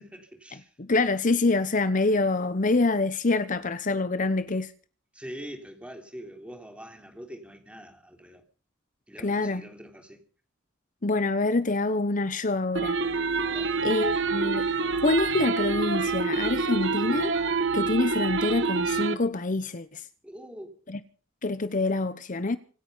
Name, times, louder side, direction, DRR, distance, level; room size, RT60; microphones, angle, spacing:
voice 1, 0.0-0.7 5.1-8.4 9.1-10.2 13.5-13.8 20.2-20.8, equal, 5° right, 3.4 m, -44 dB
voice 2, 0.8-4.7 9.2-9.6 11.0-13.0 13.8-14.7 15.0-17.3 17.7-20.0 20.9-21.0 21.4-22.6, left 3 dB, 40° left, 0.9 m, -26 dB
sound 1, 12.8-19.2, right 4 dB, 65° right, 1.4 m, -27 dB
25.5 x 9.7 x 5.6 m
head